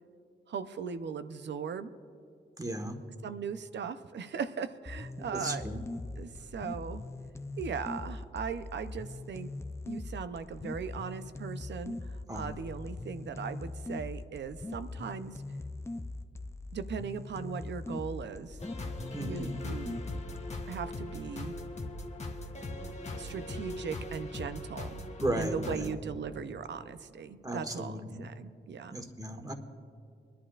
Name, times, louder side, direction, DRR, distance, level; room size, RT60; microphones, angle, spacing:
voice 1, 0.5-1.9 3.2-5.7 6.2-7.0 7.6-9.5 9.9-15.4 16.7-18.6 19.2-20.0 20.7-21.5 23.2-25.0 25.3-29.0, right 6 dB, 70° right, 11 dB, 0.7 m, -38 dB
voice 2, 2.6-3.0 5.2-5.8 12.3-12.5 19.1-19.6 25.2-25.9 27.4-28.2 28.9-29.5, right 1 dB, 20° right, 4 dB, 1.4 m, -35 dB
sound 1, 4.9-20.9, left 2 dB, 15° left, 0.5 m, -41 dB
sound 2, 18.6-25.9, left 1 dB, 35° left, 1.1 m, -40 dB
22.0 x 11.5 x 2.5 m, 2.3 s
cardioid pair, 60°, 19 cm